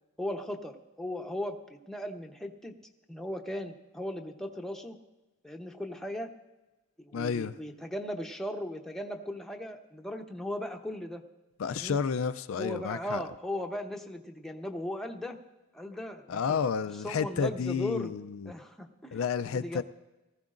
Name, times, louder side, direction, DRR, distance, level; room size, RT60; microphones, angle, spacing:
voice 1, 0.2-1.6 1.9-2.7 3.1-5.0 5.4-6.3 7.0-11.2 11.7-12.0 12.6-15.4 15.7-16.6 17.0-18.1 18.5-19.8, left 1 dB, ahead, 2 dB, 0.8 m, -37 dB
voice 2, 7.1-7.6 11.6-13.2 16.3-18.5 19.1-19.8, left 6 dB, 70° left, 11 dB, 0.4 m, -31 dB
19.0 x 15.0 x 2.5 m, 1.1 s
head